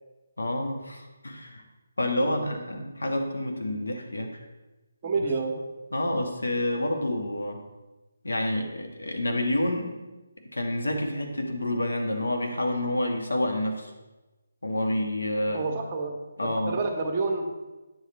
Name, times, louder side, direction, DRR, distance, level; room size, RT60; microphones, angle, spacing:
voice 1, 0.4-1.6 2.0-4.4 5.9-7.6 8.2-10.0 10.5-13.9 14.6-15.6 16.4-16.8, left 1 dB, 90° left, 3 dB, 1.5 m, -28 dB
voice 2, 5.0-5.6 15.5-16.1 16.4-17.5, right 3 dB, 30° right, 2 dB, 1.2 m, -29 dB
9.6 x 5.7 x 4.3 m, 1.1 s
figure-of-eight pair, 155°, 0 cm